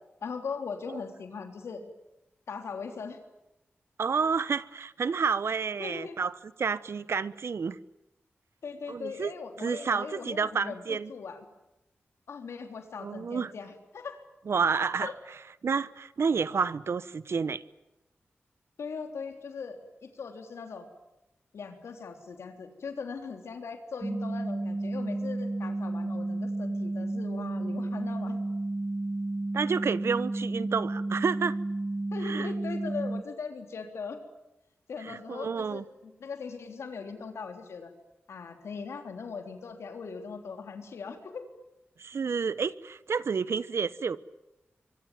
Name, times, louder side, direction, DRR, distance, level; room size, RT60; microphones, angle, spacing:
voice 1, 0.2-1.9 2.5-3.2 5.8-6.2 8.6-11.4 12.3-14.2 15.0-15.1 18.8-20.9 21.5-28.4 32.1-34.2 34.9-37.9 38.3-41.5, left 5 dB, 90° left, 3.6 m, -39 dB
voice 2, 4.0-6.3 6.6-7.8 8.9-9.3 9.6-11.1 13.0-13.5 14.5-15.1 15.6-17.6 29.5-31.6 32.2-32.5 35.0-35.8 42.0-44.2, right 5 dB, 75° right, 1.1 m, -30 dB
sound 1, 24.0-33.2, right 2 dB, 25° right, 1.0 m, -32 dB
25.5 x 24.0 x 9.3 m
cardioid pair, 55°, 4 cm